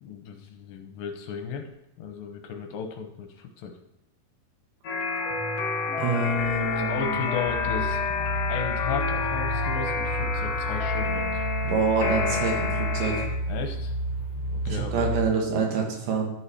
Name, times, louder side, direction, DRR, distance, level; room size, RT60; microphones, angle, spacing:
voice 1, 0.0-1.7 2.0-3.7 6.8-8.0 8.5-11.4 12.3-12.4 13.5-13.9 14.3-15.1, left 6 dB, 75° left, 4 dB, 2.3 m, -35 dB
sound 1, 4.8-13.3, left 5 dB, 55° left, 1.9 m, -29 dB
voice 2, 6.0-7.2 11.6-13.3 14.7-16.3, right 4 dB, 80° right, 1 dB, 3.3 m, -26 dB
sound 2, 7.4-15.2, right 1 dB, 5° left, 2.5 m, -31 dB
12.5 x 4.8 x 4.2 m, 0.85 s
omnidirectional pair, 4.4 m